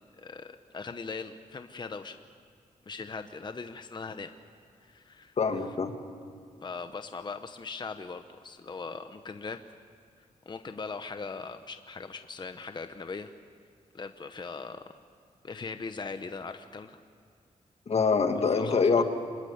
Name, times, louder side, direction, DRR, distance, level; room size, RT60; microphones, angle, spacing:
voice 1, 0.2-2.2 2.9-4.3 4.8-5.4 6.6-9.6 10.5-13.3 13.9-14.9 15.4-17.0 18.5-19.0, left 4 dB, 35° left, 8 dB, 0.9 m, -40 dB
voice 2, 5.4-5.9 17.9-19.0, left 5 dB, 50° left, 6 dB, 1.8 m, -24 dB
25.5 x 21.0 x 8.1 m, 2.3 s
wide cardioid pair, 110°, 14 cm